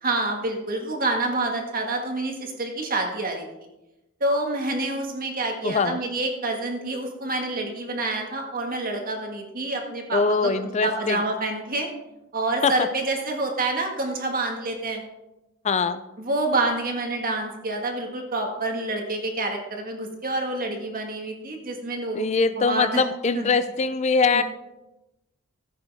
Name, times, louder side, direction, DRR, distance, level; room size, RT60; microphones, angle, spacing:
voice 1, 0.0-3.4 4.2-11.9 12.3-15.0 16.2-23.0 23.3-23.5 24.3-24.4, right 2 dB, 40° right, 3 dB, 1.7 m, -27 dB
voice 2, 5.6-6.0 10.1-11.2 12.6-12.7 15.6-16.0 22.2-24.4, left 4 dB, 30° left, 12 dB, 0.4 m, -22 dB
15.0 x 8.2 x 3.5 m, 0.99 s
head